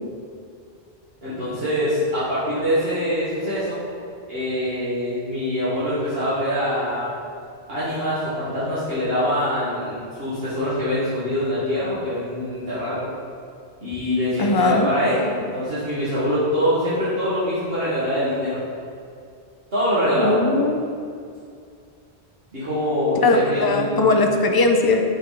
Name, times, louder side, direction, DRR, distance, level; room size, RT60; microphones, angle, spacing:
voice 1, 1.2-3.8 4.3-7.1 7.7-13.0 13.8-18.6 19.7-20.4 22.5-24.1, equal, 65° right, -13 dB, 1.9 m, -24 dB
voice 2, 14.4-14.9 20.2-20.9 23.2-25.0, left 3 dB, 30° left, 3 dB, 0.4 m, -19 dB
9.2 x 3.9 x 3.8 m, 2.3 s
omnidirectional pair, 1.1 m